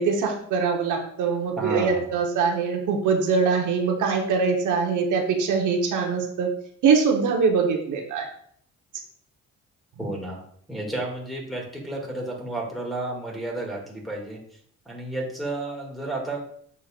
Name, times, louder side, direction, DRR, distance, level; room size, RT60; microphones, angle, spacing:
voice 1, 0.0-6.5 6.8-8.3, right 5 dB, 80° right, 2 dB, 1.2 m, -23 dB
voice 2, 1.6-2.2 10.0-10.4 10.7-14.4 14.9-16.4, right 2 dB, ahead, -4 dB, 2.1 m, -32 dB
7.6 x 5.4 x 2.5 m, 0.62 s
cardioid pair, 90°, 30 cm